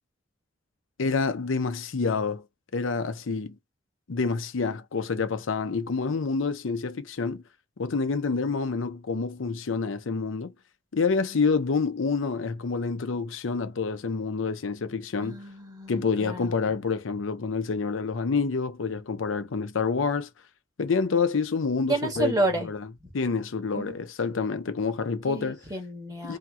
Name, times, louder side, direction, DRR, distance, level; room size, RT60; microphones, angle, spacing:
voice 1, 1.0-2.4 2.7-3.5 4.1-7.4 7.8-10.5 10.9-15.4 15.9-20.3 20.8-22.9 23.1-25.6 26.2-26.4, left 4 dB, 80° left, 0.6 m, -28 dB
voice 2, 15.2-16.5 21.9-22.7 23.7-24.0 25.3-26.4, right 2 dB, 20° right, 1.3 m, -30 dB
2.8 x 2.7 x 2.4 m
head